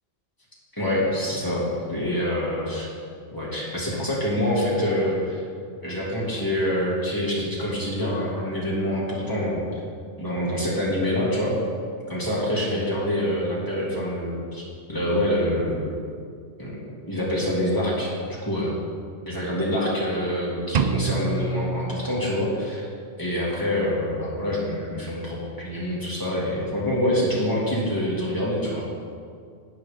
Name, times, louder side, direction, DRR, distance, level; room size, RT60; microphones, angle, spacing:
voice 1, 0.8-2.9 3.3-5.4 5.8-9.7 10.2-11.6 12.1-14.6 14.9-16.0 16.6-16.7 17.1-18.7 19.3-22.9 23.2-28.8, left 1 dB, 20° left, -6 dB, 2.4 m, -26 dB
sound 1, 20.7-22.7, right 4 dB, 55° right, 0.5 m, -27 dB
11.5 x 8.9 x 3.6 m, 2.2 s
omnidirectional pair, 1.2 m